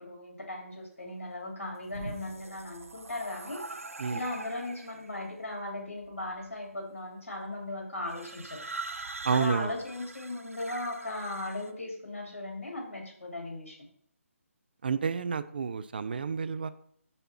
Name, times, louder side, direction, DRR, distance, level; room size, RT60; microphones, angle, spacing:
voice 1, 0.0-3.6 4.1-8.6 9.3-13.8, left 2 dB, 60° left, 1 dB, 2.7 m, -37 dB
sound 1, 1.7-5.1 6.0-6.5 8.1-11.7, right 3 dB, 70° right, 0.7 m, -43 dB
voice 2, 9.2-9.7 14.8-16.7, right 5 dB, 40° right, 13 dB, 0.4 m, -30 dB
6.7 x 5.4 x 4.3 m, 0.65 s
figure-of-eight pair, 145°, 8 cm